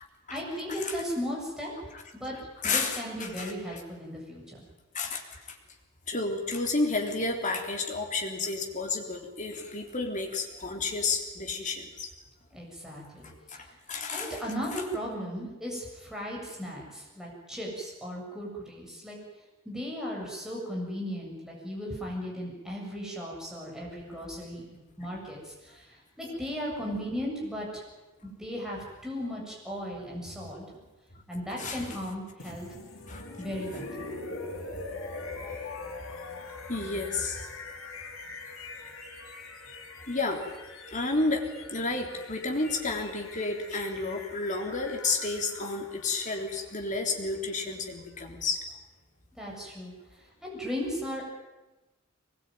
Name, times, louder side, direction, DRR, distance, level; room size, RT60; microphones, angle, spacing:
voice 1, 0.3-1.7 2.1-2.3 2.6-4.6 12.5-13.3 14.1-19.2 19.6-27.8 28.2-30.6 31.3-32.7 33.4-34.1 49.3-49.9 50.4-51.2, equal, 5° right, -3 dB, 7.6 m, -36 dB
voice 2, 2.6-3.0 3.4-3.8 4.9-5.6 6.1-12.1 13.2-14.4 31.5-31.8 32.5-32.6 33.1-33.3 34.7-35.0 35.3-35.5 35.9-37.5 38.8-38.9 40.1-40.4 40.9-48.6, left 3 dB, 35° left, 2 dB, 3.6 m, -31 dB
sound 1, 32.4-48.3, left 3 dB, 75° left, 4.1 m, -43 dB
22.5 x 21.0 x 9.3 m, 1.1 s
head